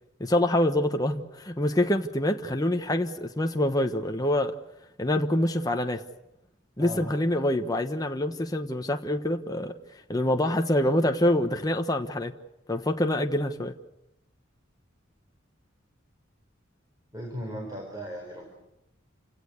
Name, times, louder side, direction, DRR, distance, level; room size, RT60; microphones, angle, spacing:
voice 1, 0.2-4.5 5.0-6.0 6.8-9.7 10.1-12.3 12.7-13.7, left 1 dB, 20° left, 4 dB, 1.1 m, -26 dB
voice 2, 6.8-7.1 17.1-18.5, equal, 20° right, 1 dB, 4.2 m, -37 dB
29.0 x 17.5 x 8.2 m, 0.86 s
head